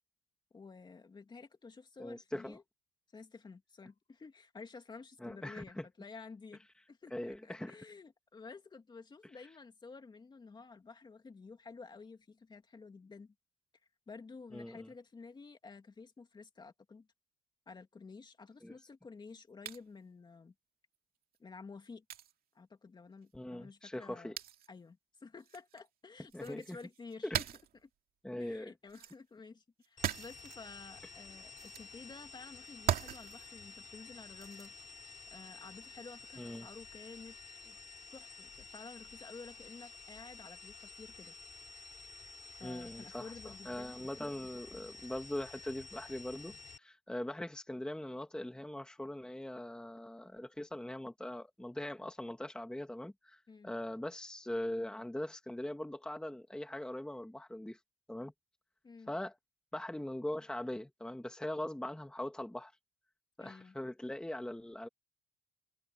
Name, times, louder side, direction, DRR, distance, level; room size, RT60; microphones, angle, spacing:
voice 1, 0.5-2.6 3.1-13.3 14.1-17.1 17.7-20.5 21.4-22.0 22.5-24.3 24.7-27.5 27.8-27.9 28.4-34.7 35.3-37.4 37.6-37.8 38.1-41.3 42.6-44.0 53.5-53.7 58.8-59.1 63.4-63.8, left 4 dB, 25° left, 2.6 m, -52 dB
voice 2, 2.0-2.6 5.2-5.9 7.1-7.8 14.5-14.9 18.6-18.7 23.3-24.3 26.3-26.6 27.2-27.4 28.2-28.7 36.4-36.7 42.6-57.8 58.1-58.3 59.1-59.4 59.7-62.7 63.4-64.9, left 1 dB, 5° left, 2.1 m, -41 dB
sound 1, 19.7-19.8 21.3-21.4 22.1-22.3 24.4-24.7 25.4-25.9 26.3-27.8 28.9-29.2 29.8-30.6 31.6-31.9 32.7-33.5 34.4-34.7 35.2-35.4, right 10 dB, 60° right, 2.2 m, -39 dB
sound 2, 30.0-46.8, left 3 dB, 50° left, 5.6 m, -52 dB
cardioid pair, 110°, 17 cm